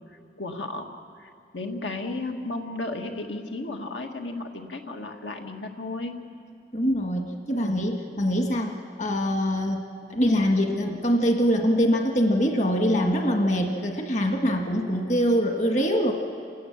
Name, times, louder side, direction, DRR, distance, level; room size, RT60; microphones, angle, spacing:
voice 1, 0.1-0.9 1.2-6.1 7.5-7.9, left 2 dB, 90° left, 3 dB, 1.9 m, -34 dB
voice 2, 6.7-9.8 10.1-16.1, equal, 40° left, 3 dB, 1.7 m, -24 dB
29.0 x 18.0 x 7.4 m, 2.4 s
head